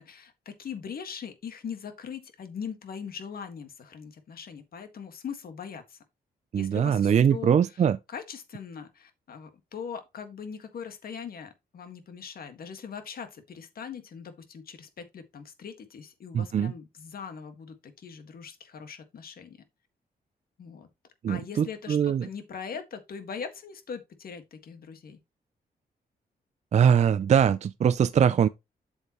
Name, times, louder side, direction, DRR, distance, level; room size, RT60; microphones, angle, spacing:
voice 1, 0.0-6.0 6.5-7.5 8.1-19.6 20.6-20.9 21.3-25.2, left 6 dB, 65° left, 1.7 m, -41 dB
voice 2, 6.5-8.0 16.3-16.7 21.2-22.3 26.7-28.5, right 8 dB, 45° right, 0.4 m, -22 dB
8.0 x 7.1 x 3.0 m
cardioid pair, 115°, 16 cm